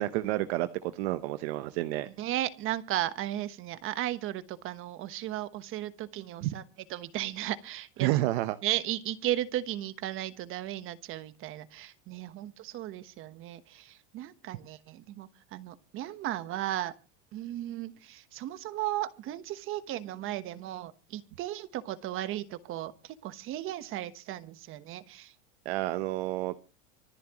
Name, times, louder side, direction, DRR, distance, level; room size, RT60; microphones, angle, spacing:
voice 1, 0.0-2.1 6.4-6.5 8.0-8.6 25.6-26.6, right 16 dB, 70° right, 11 dB, 0.9 m, -30 dB
voice 2, 2.0-6.6 6.9-8.1 8.6-16.9 17.3-25.3, right 13 dB, 40° right, 13 dB, 1.2 m, -35 dB
25.0 x 11.0 x 3.0 m, 0.34 s
supercardioid pair, 145°, 34 cm